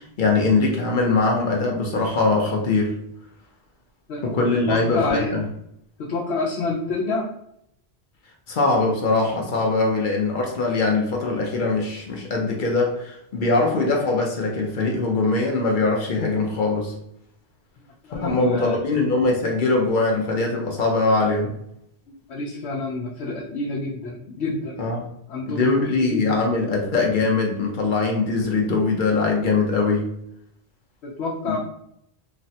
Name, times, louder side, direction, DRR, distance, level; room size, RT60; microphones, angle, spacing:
voice 1, 0.0-2.9 4.2-5.4 8.5-16.9 18.1-21.5 24.8-25.1 25.5-30.1 31.4-31.6, left 3 dB, 55° left, 0 dB, 0.7 m, -22 dB
voice 2, 4.6-5.4 6.0-7.3 18.1-18.8 22.3-24.8 25.3-26.4 31.0-31.6, left 3 dB, 90° left, -4 dB, 0.9 m, -28 dB
3.2 x 2.1 x 2.7 m, 0.73 s
omnidirectional pair, 1.1 m